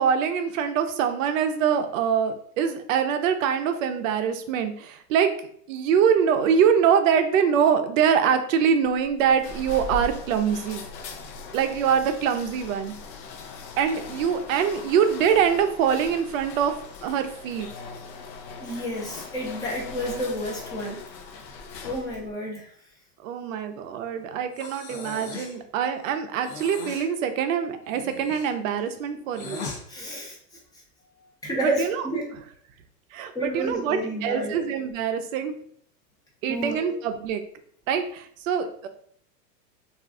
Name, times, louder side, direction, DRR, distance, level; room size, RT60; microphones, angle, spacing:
voice 1, 0.0-5.3 5.7-10.8 11.5-12.9 13.8-16.7 17.0-17.7 23.2-29.6 31.6-32.0 33.1-35.5 36.4-37.4 37.9-38.9, right 7 dB, 55° right, 8 dB, 0.5 m, -24 dB
sound 1, 8.8-22.3, left 4 dB, 80° left, 0.7 m, -40 dB
voice 2, 18.6-21.0 21.8-22.7 29.9-30.4 31.4-32.3 33.3-34.6 36.5-36.8, right 1 dB, 10° left, -3 dB, 0.5 m, -30 dB
Breathing, 24.5-25.6 26.4-27.1 27.8-29.8, left 4 dB, 45° left, 0.8 m, -38 dB
2.5 x 2.3 x 3.5 m, 0.62 s
hypercardioid pair, 125°, 49 cm